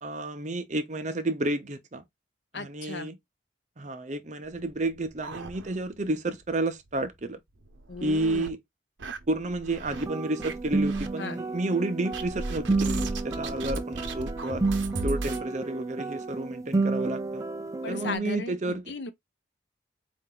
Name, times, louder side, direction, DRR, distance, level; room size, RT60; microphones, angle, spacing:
voice 1, 0.0-2.0 2.5-3.2 3.8-7.4 8.0-8.6 9.3-14.6 15.0-17.4 17.9-18.9, right 2 dB, 40° right, 0.7 m, -31 dB
voice 2, 2.5-3.1 7.9-8.5 11.2-11.4 17.8-19.1, left 3 dB, 70° left, 0.7 m, -36 dB
sound 1, 4.5-6.1 6.4-6.5 6.9-7.0 7.6-8.5 9.0-10.1 10.4-11.1 12.1-15.4, right 2 dB, 85° right, 0.8 m, -36 dB
sound 2, 9.9-18.2, right 3 dB, 20° right, 0.3 m, -31 dB
4.3 x 2.6 x 3.8 m
head